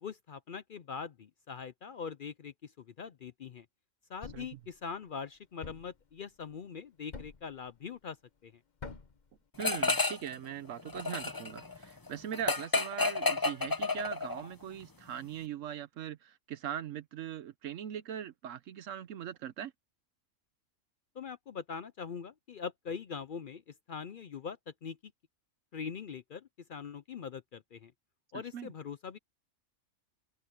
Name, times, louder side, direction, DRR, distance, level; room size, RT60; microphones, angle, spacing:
voice 1, 0.0-3.7 4.1-8.2 8.4-8.5 21.2-23.6 23.9-25.1 25.7-27.9 28.3-29.2, left 6 dB, 55° left, 0.6 m, -42 dB
Thump thud, 4.2-4.6 5.6-6.0 7.1-7.5 8.8-9.2, left 4 dB, 35° left, 1.1 m, -45 dB
sound 1, 9.6-10.3 10.6-14.5, left 3 dB, 20° left, 0.8 m, -31 dB
voice 2, 9.6-19.7 28.5-28.7, right 9 dB, 75° right, 1.0 m, -41 dB
open air
omnidirectional pair, 1.4 m